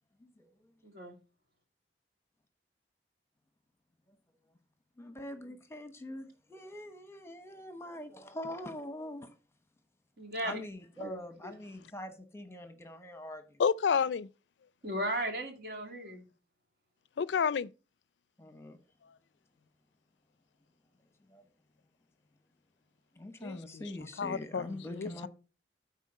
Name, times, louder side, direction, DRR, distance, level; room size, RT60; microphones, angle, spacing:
voice 1, 0.8-1.1 10.2-10.6 11.0-11.1 14.8-16.2, right 1 dB, 55° right, 2.2 m, -36 dB
voice 2, 5.0-9.3 10.4-13.6 14.9-15.0 18.4-18.8 21.3-21.4 23.2-25.3, left 1 dB, 15° left, 1.0 m, -43 dB
voice 3, 13.6-14.3 17.2-17.7 23.4-23.9 24.2-25.3, left 6 dB, 85° left, 0.4 m, -30 dB
9.2 x 4.2 x 5.4 m
head